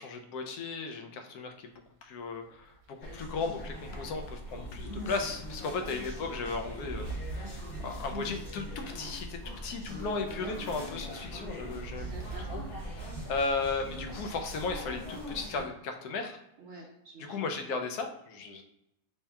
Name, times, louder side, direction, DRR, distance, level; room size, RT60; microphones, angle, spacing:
voice 1, 0.0-1.7 2.0-12.1 12.5-12.6 12.9-16.4 17.3-18.6, left 4 dB, 75° left, 5 dB, 1.1 m, -36 dB
sound 1, 2.3-15.0, right 3 dB, 85° right, 1.2 m, -45 dB
sound 2, 3.0-15.6, equal, 45° left, 1.4 m, -42 dB
voice 2, 5.7-6.0 10.2-10.5 11.9-12.9 16.6-17.4, right 2 dB, 55° right, -2 dB, 0.8 m, -49 dB
3.3 x 2.8 x 3.4 m, 0.86 s
omnidirectional pair, 1.7 m